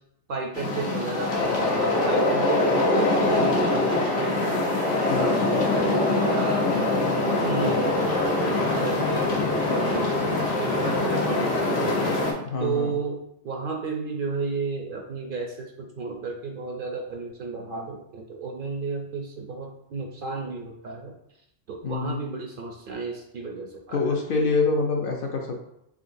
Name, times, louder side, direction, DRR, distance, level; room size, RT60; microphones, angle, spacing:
voice 1, 0.3-4.7 5.1-6.8 7.2-12.3 12.6-13.2 13.4-21.1 21.7-24.5, right 4 dB, 60° right, 1 dB, 0.6 m, -33 dB
sound 1, 0.5-12.3, left 2 dB, 85° left, 1.2 m, -23 dB
voice 2, 12.4-12.9 21.8-22.3 23.9-25.6, left 4 dB, 60° left, 2 dB, 0.6 m, -26 dB
3.7 x 3.7 x 2.6 m, 0.77 s
omnidirectional pair, 1.2 m